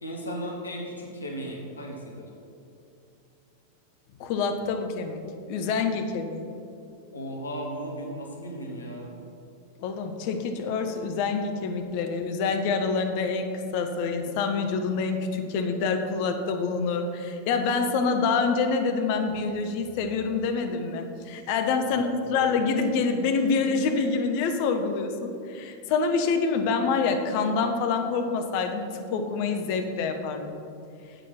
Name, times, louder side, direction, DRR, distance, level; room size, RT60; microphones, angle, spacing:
voice 1, 0.0-2.3 7.1-9.1 21.9-22.4, equal, 75° left, 0 dB, 1.5 m, -36 dB
voice 2, 4.2-5.2 5.5-6.5 9.8-30.6, left 4 dB, 45° left, 5 dB, 1.0 m, -26 dB
8.0 x 7.0 x 5.8 m, 2.7 s
figure-of-eight pair, 90°, 0 cm